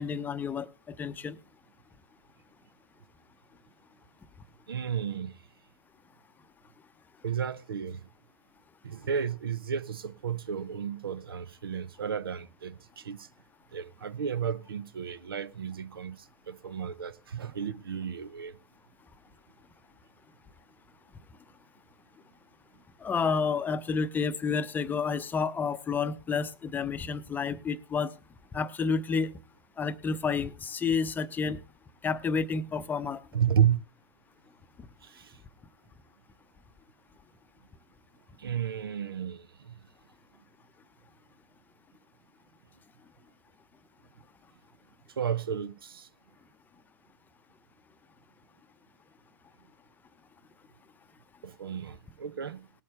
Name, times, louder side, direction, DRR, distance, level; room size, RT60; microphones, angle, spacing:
voice 1, 0.0-1.4 23.0-28.1 28.5-29.3 29.8-31.6 32.0-33.2, left 5 dB, 15° left, 0.7 m, -30 dB
voice 2, 4.7-5.4 7.2-8.0 8.8-13.3 13.7-18.6 33.3-33.8 35.0-35.4 38.4-39.7 45.2-46.1 51.4-52.7, right 8 dB, 70° right, 0.8 m, -32 dB
19.5 x 8.6 x 3.3 m
figure-of-eight pair, 110°, 12 cm